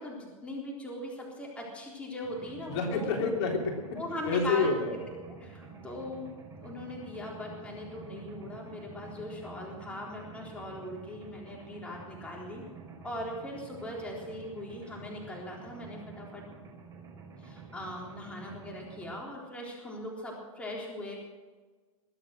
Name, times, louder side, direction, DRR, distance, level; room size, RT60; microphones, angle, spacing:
voice 1, 0.0-3.2 3.9-4.9 5.3-6.3 6.6-12.6 13.0-16.4 17.4-21.2, left 1 dB, 5° left, -3 dB, 3.8 m, -40 dB
Mechanisms, 2.2-19.1, right 4 dB, 20° right, 5.3 m, -49 dB
voice 2, 2.7-3.7 4.3-4.9, left 4 dB, 45° left, 1 dB, 3.3 m, -28 dB
22.5 x 8.6 x 6.3 m, 1.4 s
hypercardioid pair, 140°, 18 cm